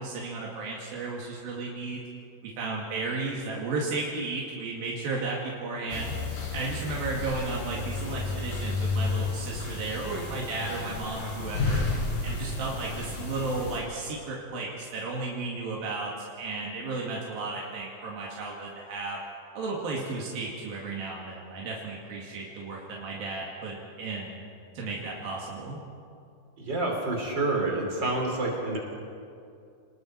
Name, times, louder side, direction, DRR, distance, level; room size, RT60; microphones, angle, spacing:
voice 1, 0.0-2.0 2.4-6.1 6.5-11.8 12.2-19.2 19.5-24.4 24.8-25.8, right 3 dB, 90° right, -3 dB, 4.0 m, -34 dB
sound 1, 5.9-13.8, left 3 dB, 70° left, 5.1 m, -32 dB
voice 2, 26.6-28.8, right 2 dB, 30° right, 0 dB, 4.1 m, -28 dB
30.0 x 19.5 x 4.6 m, 2.4 s
omnidirectional pair, 4.0 m